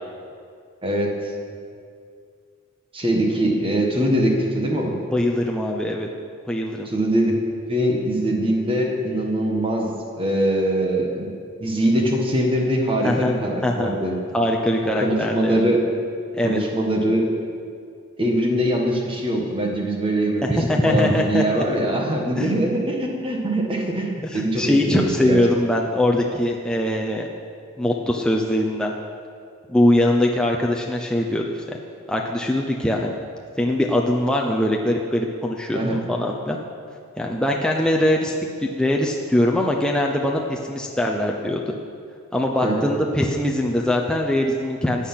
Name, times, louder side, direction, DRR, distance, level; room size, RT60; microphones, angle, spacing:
voice 1, 0.8-1.1 2.9-5.0 6.8-7.3 7.7-11.3 11.6-14.1 15.0-15.8 16.4-17.3 18.2-25.4 35.7-36.0 42.6-42.8, right 1 dB, 25° right, 0 dB, 1.7 m, -22 dB
voice 2, 5.1-6.1 6.5-6.9 13.0-13.3 13.6-13.9 14.3-15.6 16.3-16.6 20.4-21.6 22.4-22.5 24.3-27.3 27.8-28.9 29.7-31.8 32.1-33.1 33.6-36.6 37.2-38.3 38.6-41.7 42.3-45.1, left 1 dB, 5° left, -1 dB, 0.6 m, -22 dB
14.5 x 8.4 x 5.8 m, 2.3 s
head